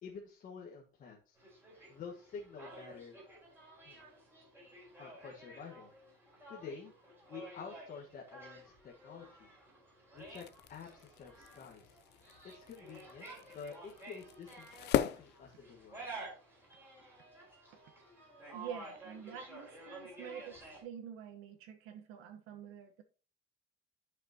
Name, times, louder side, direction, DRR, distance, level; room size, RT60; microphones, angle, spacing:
voice 1, 0.0-1.4 1.9-3.2 3.8-4.0 5.0-5.9 6.5-6.9 7.3-9.5 10.1-10.4 10.7-12.0 12.4-16.1, left 5 dB, 40° left, -1 dB, 1.5 m, -49 dB
sound 1, 1.4-20.8, right 2 dB, 10° right, 4.7 m, -52 dB
sound 2, 10.2-16.2, left 11 dB, 55° left, 0.5 m, -40 dB
voice 2, 18.5-23.0, right 8 dB, 90° right, 4 dB, 1.2 m, -47 dB
12.0 x 5.8 x 2.9 m, 0.39 s
cardioid pair, 170°, 21 cm